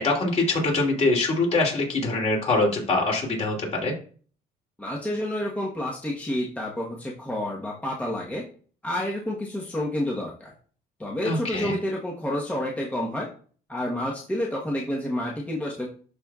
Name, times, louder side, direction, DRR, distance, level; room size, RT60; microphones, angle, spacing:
voice 1, 0.0-3.9 11.2-11.7, left 2 dB, 40° left, 0 dB, 3.0 m, -24 dB
voice 2, 4.8-8.4 8.8-10.5 11.0-13.3 13.7-15.9, left 1 dB, 10° left, -3 dB, 1.2 m, -29 dB
12.0 x 4.5 x 2.4 m, 0.43 s
cardioid pair, 110°, 17 cm